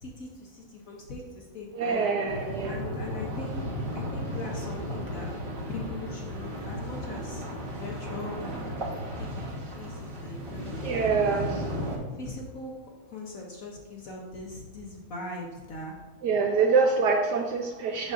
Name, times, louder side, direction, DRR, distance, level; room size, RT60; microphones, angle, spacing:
voice 1, 0.0-2.1 2.6-3.6 3.9-5.3 5.7-8.4 8.7-9.4 9.8-11.0 11.3-11.5 12.1-12.7 13.1-16.0, left 3 dB, 55° left, -1 dB, 1.0 m, -40 dB
voice 2, 1.7-2.8 10.8-11.7 16.2-18.1, right 4 dB, 75° right, 3 dB, 1.0 m, -25 dB
sound 1, 2.3-12.0, equal, 30° right, 1.2 m, -35 dB
7.4 x 6.3 x 2.5 m, 1.2 s
omnidirectional pair, 2.1 m